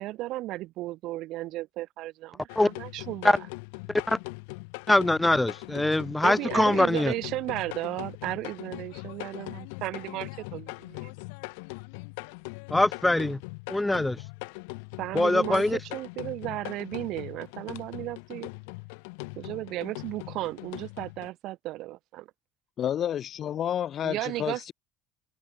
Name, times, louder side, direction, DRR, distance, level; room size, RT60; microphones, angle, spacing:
voice 1, 0.0-3.5 6.2-11.1 15.0-18.5 19.4-22.3 24.0-24.6, right 17 dB, 65° right, 1.1 m, -34 dB
sound 1, 2.5-21.3, left 32 dB, 75° left, 7.3 m, -41 dB
voice 2, 4.9-7.1 12.7-13.4 13.7-14.2 15.1-15.8, left 2 dB, 10° left, 0.5 m, -23 dB
voice 3, 22.8-24.7, left 10 dB, 50° left, 1.0 m, -30 dB
hypercardioid pair, 70°, 0 cm